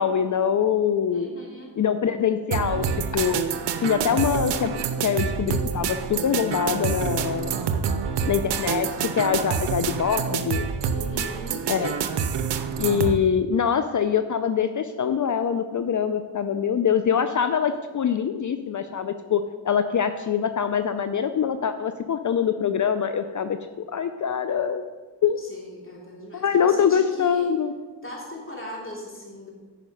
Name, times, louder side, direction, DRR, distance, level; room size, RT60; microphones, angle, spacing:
voice 1, 0.0-1.3 1.8-2.8 3.1-3.4 3.8-7.5 8.3-10.7 11.7-11.9 12.8-24.9 25.2-25.4 26.3-27.7, left 7 dB, 45° left, 9 dB, 0.5 m, -24 dB
voice 2, 1.1-1.9 10.9-12.0 25.4-27.5 28.0-29.5, left 1 dB, 30° left, -3 dB, 3.0 m, -39 dB
sound 1, 2.5-13.2, right 7 dB, 80° right, 0.7 m, -27 dB
9.2 x 5.3 x 5.3 m, 1.3 s
cardioid pair, 65°, 42 cm